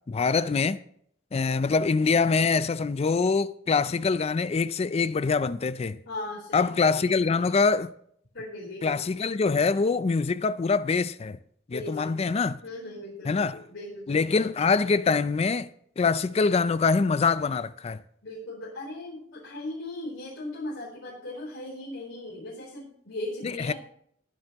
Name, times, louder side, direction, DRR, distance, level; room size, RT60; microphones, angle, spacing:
voice 1, 0.1-0.8 1.3-6.0 6.5-7.9 8.8-11.4 11.7-12.6 13.3-13.6 14.1-15.7 16.0-18.0 23.4-23.7, left 4 dB, 35° left, 0.4 m, -24 dB
voice 2, 6.1-7.1 8.3-8.9 11.7-12.2 12.6-14.5 18.2-23.7, left 2 dB, 85° left, 3.8 m, -38 dB
19.5 x 7.6 x 3.0 m
head